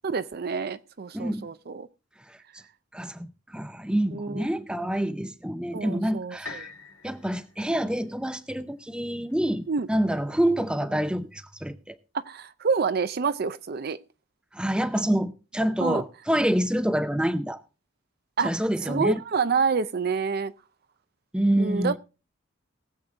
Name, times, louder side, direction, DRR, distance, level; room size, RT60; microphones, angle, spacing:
voice 1, 0.0-1.9 4.1-4.5 5.7-6.7 9.7-9.9 12.1-14.0 15.8-16.0 18.4-18.5 18.8-20.5 21.6-22.0, right 5 dB, 50° right, 0.5 m, -27 dB
voice 2, 1.1-1.5 2.3-2.4 2.9-6.7 7.0-12.0 14.5-17.6 18.4-19.2 21.3-22.0, right 1 dB, 5° right, 0.6 m, -27 dB
sound 1, 6.4-10.4 11.0-11.1, left 3 dB, 70° left, 2.8 m, -46 dB
19.0 x 7.9 x 3.8 m
head